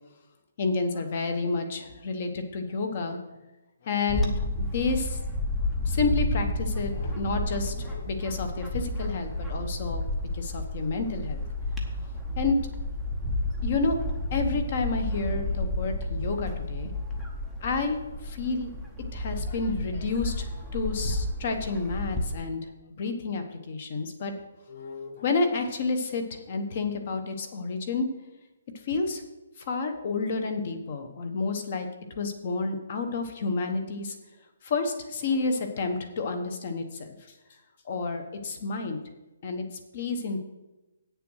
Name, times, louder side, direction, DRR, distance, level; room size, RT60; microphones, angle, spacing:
voice 1, 0.6-3.2 3.8-4.3 4.6-5.2 5.9-10.0 10.3-11.4 12.4-12.6 13.6-14.0 14.3-16.9 17.6-18.7 19.1-20.5 20.7-22.6 23.0-24.3 24.7-28.1 28.9-29.2 29.7-31.9 32.2-34.1 34.6-37.1 37.9-39.0 39.4-39.6 39.9-40.4, left 4 dB, 30° left, 7 dB, 1.0 m, -30 dB
Bird / Wind, 4.1-22.3, left 1 dB, 5° left, 0.7 m, -31 dB
8.8 x 6.8 x 6.3 m, 1.0 s
hypercardioid pair, 180°, 0 cm